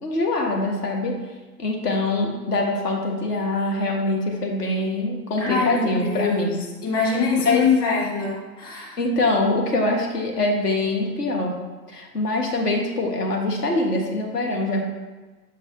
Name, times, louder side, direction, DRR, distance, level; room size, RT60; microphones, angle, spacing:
voice 1, 0.0-1.2 1.6-6.5 7.4-7.6 8.7-11.5 11.9-14.8, left 2 dB, 70° left, 0 dB, 1.6 m, -24 dB
voice 2, 5.4-9.0, left 5 dB, 30° left, -3 dB, 2.0 m, -24 dB
6.7 x 6.4 x 2.8 m, 1.2 s
figure-of-eight pair, 105°, 49 cm